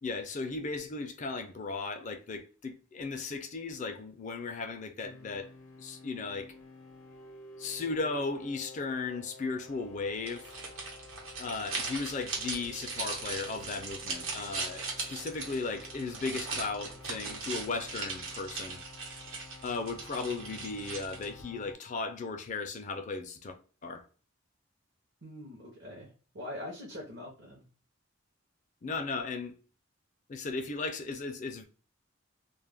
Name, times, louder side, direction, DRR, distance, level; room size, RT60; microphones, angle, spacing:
voice 1, 0.0-5.5 5.8-6.5 7.6-10.5 11.4-18.8 19.6-23.6 23.8-24.0 28.8-29.6 30.3-31.6, left 4 dB, 35° left, 0.4 m, -36 dB
sound 1, 5.0-21.7, left 2 dB, 80° left, 0.6 m, -51 dB
sound 2, 10.2-21.4, right 4 dB, 75° right, 0.9 m, -39 dB
voice 2, 25.2-27.7, left 1 dB, 55° right, 0.6 m, -43 dB
2.2 x 2.1 x 3.2 m
head